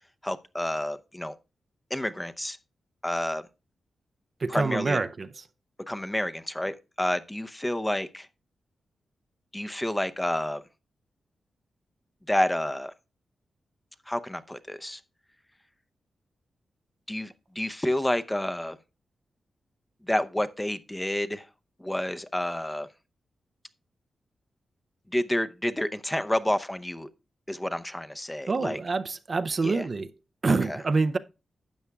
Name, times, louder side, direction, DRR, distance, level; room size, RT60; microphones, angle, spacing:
voice 1, 0.2-1.3 1.9-2.6 3.0-3.4 4.5-5.0 5.9-8.3 9.5-10.6 12.3-12.9 14.1-15.0 17.1-18.8 20.0-21.5 21.8-22.9 25.1-27.1 27.5-28.8 29.6-29.9 30.5-30.8, left 1 dB, 10° left, 0.7 m, -29 dB
voice 2, 4.4-5.3 28.5-30.1 30.4-31.2, right 3 dB, 45° right, 0.5 m, -26 dB
12.5 x 8.1 x 2.3 m
cardioid pair, 65°, 0 cm